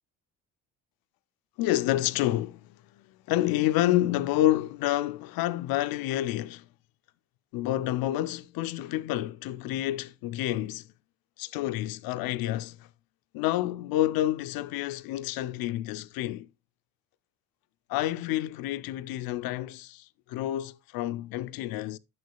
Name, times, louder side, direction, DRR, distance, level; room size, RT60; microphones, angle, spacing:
voice 1, 1.6-6.7 7.5-10.9 11.4-12.9 13.3-16.5 17.9-22.0, left 14 dB, 65° left, 0.6 m, -29 dB
8.9 x 6.4 x 2.2 m
supercardioid pair, 70°, 39 cm